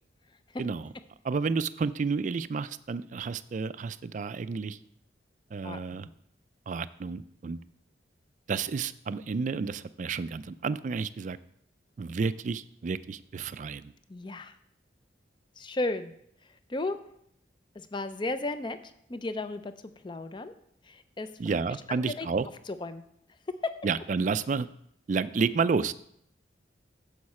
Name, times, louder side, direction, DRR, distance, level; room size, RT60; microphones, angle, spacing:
voice 1, 0.6-0.9 1.2-4.8 5.5-6.1 6.7-7.6 8.5-11.4 12.0-13.9 21.4-22.5 23.8-24.7 25.1-25.9, right 5 dB, 40° right, 15 dB, 0.3 m, -30 dB
voice 2, 5.6-6.1 14.1-14.5 15.6-16.1 16.7-17.0 17.8-19.7 20.0-20.5 20.8-21.3 21.9-22.3 22.7-23.0 23.6-23.7, left 2 dB, 25° left, 11 dB, 0.5 m, -34 dB
9.5 x 7.3 x 4.3 m, 0.72 s
head